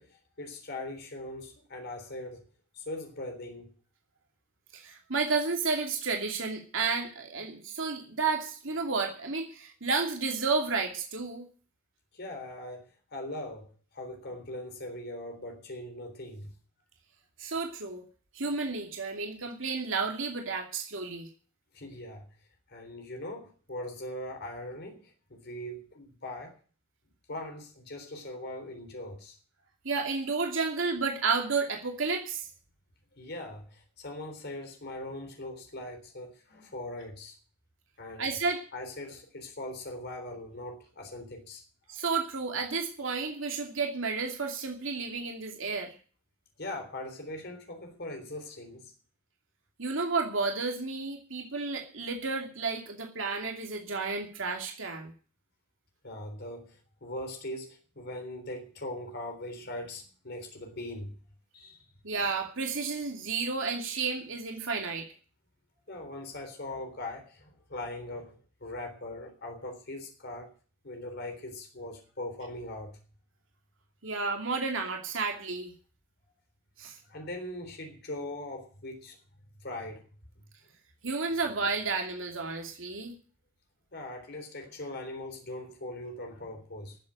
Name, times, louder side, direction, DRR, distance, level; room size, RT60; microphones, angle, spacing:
voice 1, 0.0-2.5 2.7-3.7 12.1-16.5 21.7-22.3 22.7-26.6 27.3-29.4 33.1-37.4 38.0-38.4 38.7-41.6 46.6-48.9 56.0-61.1 61.5-61.8 65.9-70.5 70.8-73.0 77.1-79.2 79.6-80.0 83.9-87.0, left 1 dB, 55° left, 3.7 m, -40 dB
voice 2, 4.7-11.5 17.4-18.0 18.3-21.3 29.8-32.5 38.2-38.6 41.9-45.9 49.8-55.1 62.0-65.1 74.0-75.7 76.8-77.0 81.0-83.1, right 4 dB, 70° right, 2.7 m, -31 dB
14.0 x 7.7 x 8.9 m
head